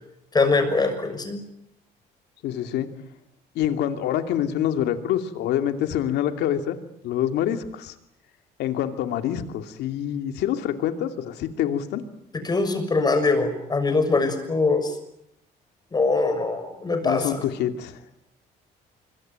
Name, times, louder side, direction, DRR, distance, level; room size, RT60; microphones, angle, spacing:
voice 1, 0.3-1.4 12.4-14.9 15.9-17.4, left 3 dB, 25° left, 8 dB, 6.4 m, -22 dB
voice 2, 2.4-2.9 3.5-6.8 7.0-7.9 8.6-12.0 17.0-18.0, left 10 dB, 80° left, 7 dB, 2.7 m, -26 dB
26.0 x 23.0 x 9.5 m, 0.79 s
cardioid pair, 110°, 17 cm